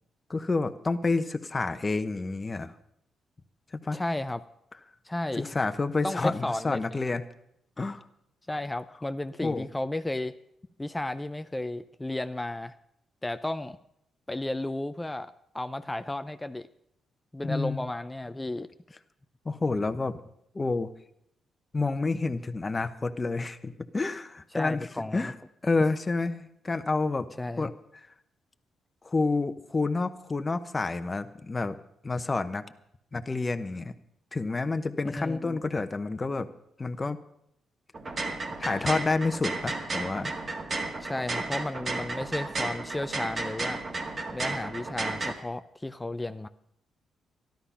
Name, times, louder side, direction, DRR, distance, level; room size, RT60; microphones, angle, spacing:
voice 1, 0.3-2.7 3.8-4.0 5.3-7.2 7.8-8.0 9.4-9.7 17.4-17.8 19.4-20.2 20.5-20.9 21.7-24.9 25.1-25.3 25.6-27.3 27.6-27.7 29.0-31.8 32.0-32.6 33.1-33.9 34.3-36.5 36.8-37.2 38.6-40.3, left 3 dB, 30° left, 10 dB, 0.9 m, -29 dB
voice 2, 3.9-4.4 5.1-5.5 6.0-6.8 8.5-10.4 10.8-12.8 13.2-13.8 14.3-16.7 17.3-18.7 24.5-25.3 27.4-27.7 35.0-35.6 41.0-43.8 44.3-46.5, left 1 dB, 15° left, 11 dB, 0.6 m, -33 dB
sound 1, 37.9-45.3, right 3 dB, 45° right, 1.9 m, -33 dB
13.0 x 12.0 x 5.7 m, 0.76 s
supercardioid pair, 55°, 0 cm